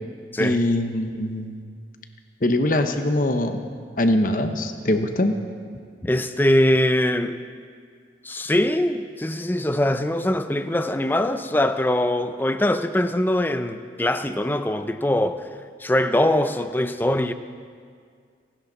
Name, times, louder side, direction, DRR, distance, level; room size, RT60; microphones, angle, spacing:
voice 1, 0.4-1.6 2.4-3.6 4.0-5.4, left 1 dB, 50° left, 7 dB, 1.0 m, -22 dB
voice 2, 6.0-7.4 8.2-15.5 15.8-17.3, left 1 dB, 10° left, 10 dB, 0.5 m, -22 dB
28.0 x 11.0 x 4.1 m, 2.1 s
head